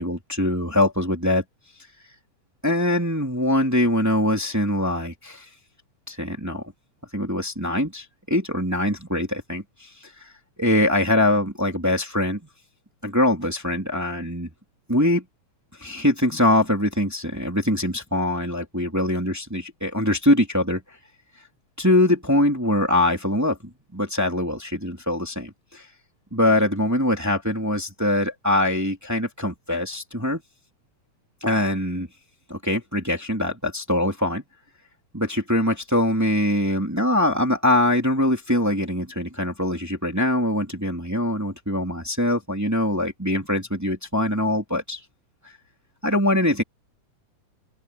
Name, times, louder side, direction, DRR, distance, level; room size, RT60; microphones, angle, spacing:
voice 1, 0.0-1.4 2.6-5.4 6.1-6.6 7.1-9.6 10.6-12.4 13.0-14.5 14.9-15.2 15.8-20.8 21.8-23.6 23.9-25.8 26.3-30.4 31.4-32.1 32.5-34.4 35.1-45.0 46.0-46.6, left 1 dB, 5° right, 3.0 m, -23 dB
open air
omnidirectional pair, 3.5 m